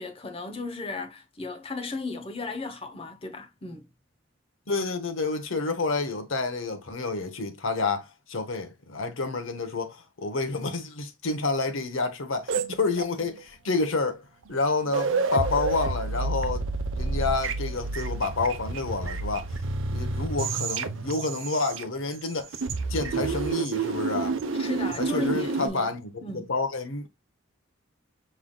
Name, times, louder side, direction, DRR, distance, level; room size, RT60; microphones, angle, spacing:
voice 1, 0.0-3.9 24.5-25.9 26.2-26.5, left 3 dB, 30° left, 0.9 m, -35 dB
voice 2, 4.7-14.2 14.5-19.5 19.9-22.6 22.9-24.4 25.0-26.0 26.3-27.1, left 3 dB, 75° left, 1.0 m, -29 dB
sound 1, 12.5-13.4 14.5-14.6 14.8-22.2 22.5-25.7, right 4 dB, 65° right, 0.7 m, -29 dB
5.5 x 3.9 x 2.2 m
head